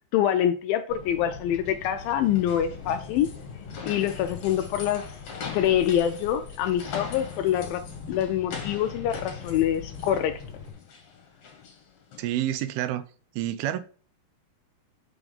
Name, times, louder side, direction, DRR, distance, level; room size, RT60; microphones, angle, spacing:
voice 1, 0.1-3.3 3.8-5.1 5.5-7.8 8.1-10.4, left 10 dB, 85° left, 2.1 m, -25 dB
Bird vocalization bird call bird song, 0.9-10.7, left 6 dB, 45° left, 2.4 m, -42 dB
sound 1, 2.0-12.4, left 6 dB, 60° left, 2.4 m, -42 dB
voice 2, 12.2-13.0 13.4-13.8, right 12 dB, 85° right, 2.5 m, -28 dB
6.0 x 3.5 x 5.2 m
omnidirectional pair, 4.4 m